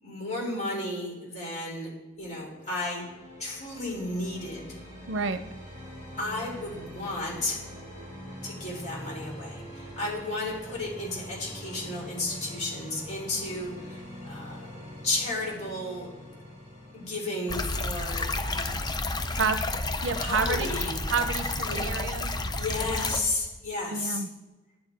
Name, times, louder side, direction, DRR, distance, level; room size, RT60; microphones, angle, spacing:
voice 1, 0.0-1.9 2.2-3.0 3.4-4.8 6.2-7.6 8.4-16.1 16.9-18.9 20.2-20.9 21.7-21.8 22.6-24.2, left 2 dB, 40° left, -3 dB, 3.4 m, -33 dB
sound 1, 2.2-20.0, equal, 15° right, 4.0 m, -44 dB
voice 2, 5.1-5.4 19.4-19.6 20.0-20.7 21.1-22.3 23.9-24.3, right 5 dB, 75° right, 11 dB, 0.6 m, -29 dB
sound 2, 17.5-23.2, left 2 dB, 20° left, 0.5 m, -30 dB
10.5 x 9.6 x 4.4 m, 1.1 s
head